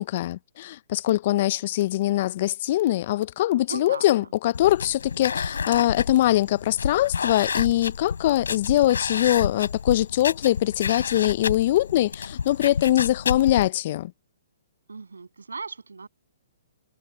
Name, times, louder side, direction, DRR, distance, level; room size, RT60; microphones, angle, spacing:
voice 1, 0.0-14.1, left 14 dB, 45° left, 0.6 m, -22 dB
voice 2, 3.7-4.3 5.1-5.3 14.9-16.1, right 4 dB, 80° right, 7.8 m, -38 dB
sound 1, 4.5-13.7, left 6 dB, 75° left, 5.6 m, -30 dB
figure-of-eight pair, 130°, 0 cm